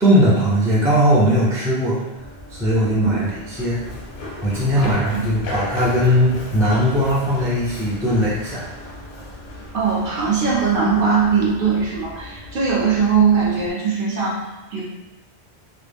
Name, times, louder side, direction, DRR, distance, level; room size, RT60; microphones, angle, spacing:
voice 1, 0.0-2.0 2.5-3.1 3.6-3.8 4.4-8.7, equal, 5° right, -6 dB, 0.4 m, -18 dB
Run, 2.2-13.7, left 1 dB, 60° left, 0.7 m, -35 dB
voice 2, 4.7-5.3 9.7-14.8, right 5 dB, 60° right, -5 dB, 0.7 m, -20 dB
2.3 x 2.0 x 3.4 m, 1.0 s
omnidirectional pair, 1.1 m